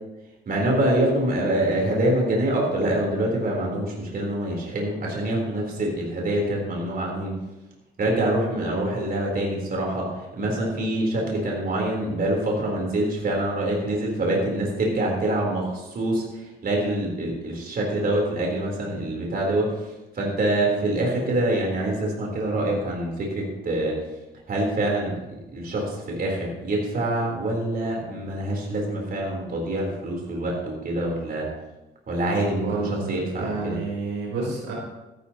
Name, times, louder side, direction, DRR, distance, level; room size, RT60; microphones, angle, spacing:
voice 1, 0.5-7.3 8.0-24.0 24.5-31.5 32.1-33.8, right 1 dB, 50° right, -1 dB, 3.8 m, -25 dB
voice 2, 32.6-34.7, right 3 dB, 90° right, -2 dB, 4.0 m, -29 dB
14.5 x 12.0 x 3.0 m, 1.0 s
cardioid pair, 90°, 20 cm